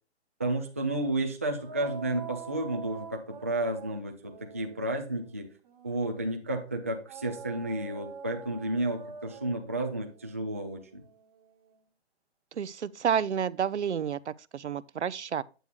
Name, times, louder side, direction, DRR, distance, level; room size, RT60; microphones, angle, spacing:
voice 1, 0.4-5.5 5.8-11.0, right 1 dB, 15° right, 0.3 m, -32 dB
sound 1, 1.6-6.2 7.1-11.8, right 6 dB, 35° right, 1.4 m, -46 dB
voice 2, 12.5-15.4, right 8 dB, 80° right, 0.7 m, -30 dB
9.0 x 8.1 x 2.3 m
hypercardioid pair, 145°, 34 cm